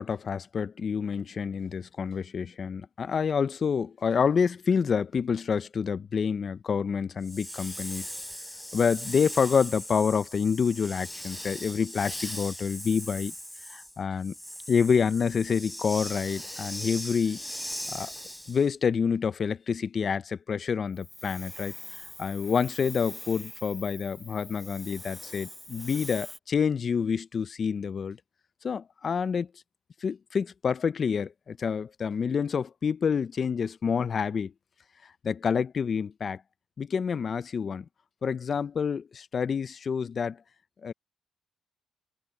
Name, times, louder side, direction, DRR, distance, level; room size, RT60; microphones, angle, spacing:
voice 1, 0.0-8.1 8.7-13.3 13.7-14.3 14.7-17.4 17.9-18.1 18.5-21.7 22.2-28.2 28.6-29.5 30.0-34.5 35.2-36.4 36.8-37.8 38.2-40.4 40.8-40.9, left 6 dB, 45° left, 0.6 m, -28 dB
Hiss, 7.2-18.7 21.0-26.4, equal, 5° left, 0.3 m, -40 dB
cardioid pair, 90°, 0 cm